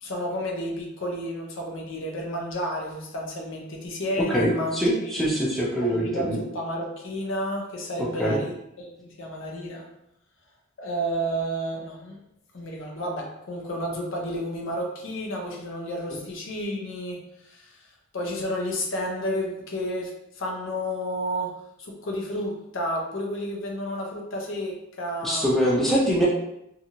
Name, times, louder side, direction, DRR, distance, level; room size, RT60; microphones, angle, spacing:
voice 1, 0.0-4.8 5.1-5.3 5.8-9.8 10.8-12.2 12.5-17.7 18.1-21.5 21.8-25.5, equal, 65° left, 0 dB, 0.6 m, -31 dB
voice 2, 4.3-6.4 8.2-8.4 25.2-26.3, equal, ahead, -5 dB, 0.4 m, -23 dB
2.8 x 2.5 x 2.6 m, 0.82 s
head